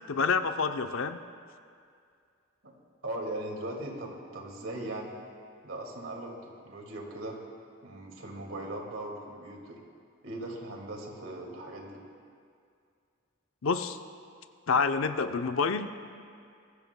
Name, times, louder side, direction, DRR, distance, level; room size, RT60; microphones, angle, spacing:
voice 1, 0.1-1.2 13.6-14.0 14.7-15.9, left 5 dB, 75° left, 8 dB, 0.6 m, -27 dB
voice 2, 3.0-5.1 5.6-7.4 7.8-9.8 10.2-12.0, right 1 dB, 70° right, 0 dB, 2.1 m, -39 dB
22.5 x 14.0 x 2.2 m, 2.3 s
head